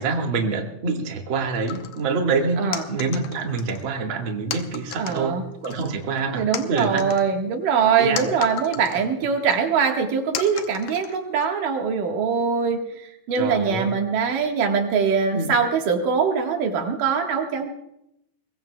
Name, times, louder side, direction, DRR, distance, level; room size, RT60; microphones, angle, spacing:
voice 1, 0.0-7.1 8.0-8.4 13.4-13.9 15.3-15.6, right 4 dB, 45° right, 1 dB, 2.2 m, -26 dB
sound 1, 1.7-2.1 2.7-3.9 4.5-5.3 5.6-6.2 6.5-9.1 9.5-9.6 10.3-11.5, left 10 dB, 75° left, 2.3 m, -34 dB
voice 2, 4.9-5.4 6.3-12.8 13.3-17.7, right 6 dB, 85° right, 2 dB, 3.3 m, -22 dB
23.0 x 22.0 x 2.3 m, 0.80 s
omnidirectional pair, 3.7 m